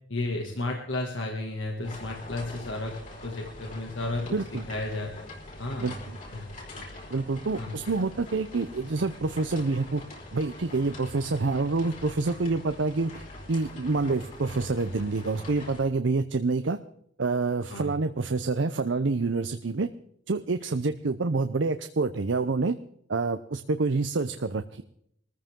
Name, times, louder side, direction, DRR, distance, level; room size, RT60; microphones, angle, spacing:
voice 1, 0.1-4.4 4.7-5.3 5.6-6.0 6.3-6.4 6.7-6.8 7.6-7.8 17.7-17.9, left 2 dB, 90° left, 1 dB, 2.2 m, -33 dB
sound 1, 1.8-15.9, left 1 dB, 45° left, 4.7 m, -44 dB
voice 2, 4.3-4.6 5.8-6.2 7.1-10.0 10.3-13.2 13.5-16.8 17.2-19.9 20.3-22.8 23.1-24.8, right 3 dB, 75° right, 10 dB, 0.7 m, -27 dB
21.5 x 14.5 x 3.7 m, 0.68 s
head